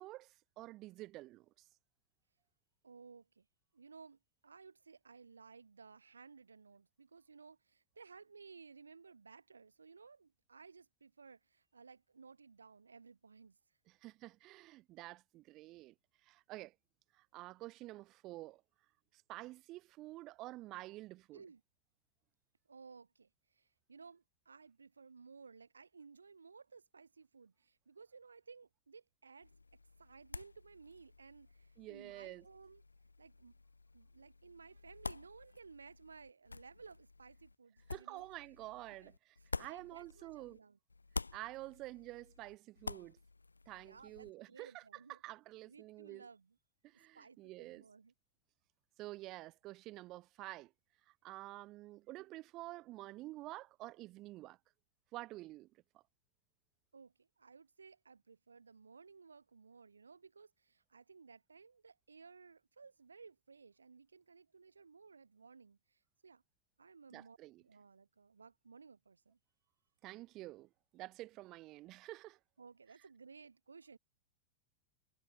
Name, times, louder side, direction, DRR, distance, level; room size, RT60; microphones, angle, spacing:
voice 1, 0.0-1.7 13.9-15.9 16.2-16.7 17.1-18.6 19.1-21.4 31.8-32.5 37.9-40.6 41.3-43.2 43.7-44.8 45.1-46.3 46.8-47.8 49.0-50.7 51.1-54.6 55.1-56.0 67.1-67.6 70.0-72.4, right 18 dB, 40° right, 1.0 m, -49 dB
voice 2, 2.8-3.5 3.7-13.6 21.3-21.6 22.7-29.5 30.0-32.8 33.2-33.6 33.9-38.3 39.0-39.1 39.6-40.8 43.8-45.2 45.7-46.6 46.9-48.1 56.9-66.4 66.8-69.4 72.6-74.0, right 5 dB, 75° right, 0.6 m, -58 dB
sound 1, 29.4-40.6 40.9-44.3, left 3 dB, 80° left, 1.2 m, -49 dB
figure-of-eight pair, 90°, 0 cm